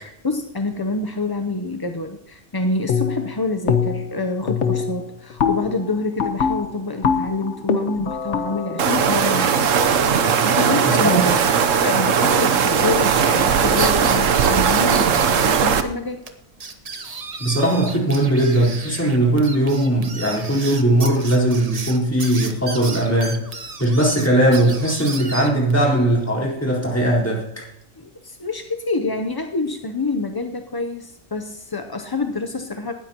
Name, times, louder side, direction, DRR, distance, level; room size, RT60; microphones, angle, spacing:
voice 1, 0.2-9.5 10.4-11.2 11.8-16.2 28.0-32.9, left 3 dB, 25° left, 6 dB, 0.5 m, -27 dB
sound 1, 2.9-3.3 3.7-4.2 4.5-10.3, left 6 dB, 65° left, 1.3 m, -24 dB
sound 2, 8.8-15.8, right 6 dB, 75° right, 1.2 m, -18 dB
voice 2, 10.9-11.4 17.4-23.4 23.8-27.6, right 1 dB, 10° left, -4 dB, 4.1 m, -19 dB
sound 3, 13.6-15.6 15.9-16.0 16.3-16.4 16.6-25.7, right 4 dB, 30° right, 1.0 m, -34 dB
18.5 x 13.0 x 2.9 m, 0.84 s
omnidirectional pair, 1.3 m